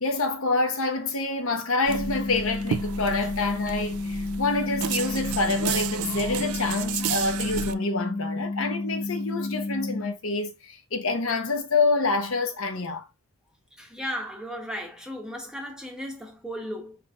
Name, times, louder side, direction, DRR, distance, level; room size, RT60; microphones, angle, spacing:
voice 1, 0.0-13.1, left 3 dB, 65° left, 1.0 m, -27 dB
sound 1, 1.8-7.7, right 8 dB, 80° right, 0.4 m, -32 dB
sound 2, 1.9-10.1, left 3 dB, 15° left, 0.7 m, -31 dB
voice 2, 13.8-17.0, equal, 5° right, 1.0 m, -35 dB
5.6 x 3.6 x 2.4 m
head